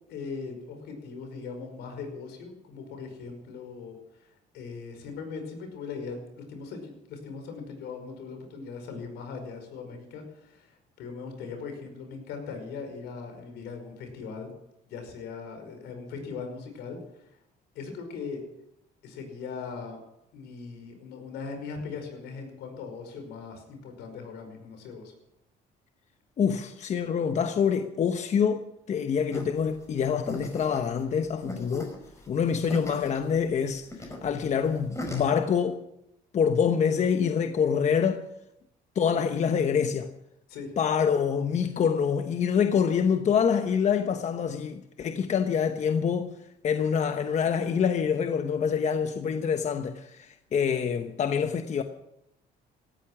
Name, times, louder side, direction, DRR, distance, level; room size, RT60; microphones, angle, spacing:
voice 1, 0.0-4.3 4.5-14.5 14.9-17.3 17.8-18.4 19.0-20.0 20.3-25.1 40.5-40.7, left 5 dB, 85° left, 5.3 m, -39 dB
voice 2, 26.4-31.9 32.3-35.8 36.3-38.3 38.9-40.1 40.8-46.4 46.6-51.8, left 7 dB, 45° left, 1.0 m, -26 dB
sound 1, 29.3-35.3, left 1 dB, 15° left, 5.0 m, -39 dB
17.5 x 13.5 x 6.1 m
cardioid pair, 110°, 17 cm